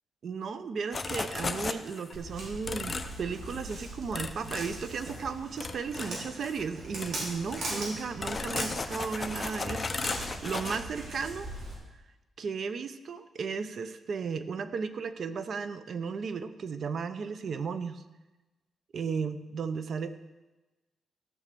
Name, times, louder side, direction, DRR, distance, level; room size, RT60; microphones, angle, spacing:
voice 1, 0.2-11.5 12.4-18.0 18.9-20.2, right 5 dB, 55° right, 11 dB, 0.7 m, -35 dB
sound 1, 0.9-2.1 2.6-3.2 3.5-3.7 4.1-5.2 5.6-6.7 7.0-7.1 7.5-10.8, left 3 dB, 30° left, 0.7 m, -36 dB
Walk footsteps, 2.1-11.7, right 2 dB, 70° right, 4.6 m, -40 dB
14.5 x 6.3 x 6.9 m, 1.1 s
cardioid pair, 110°, 0 cm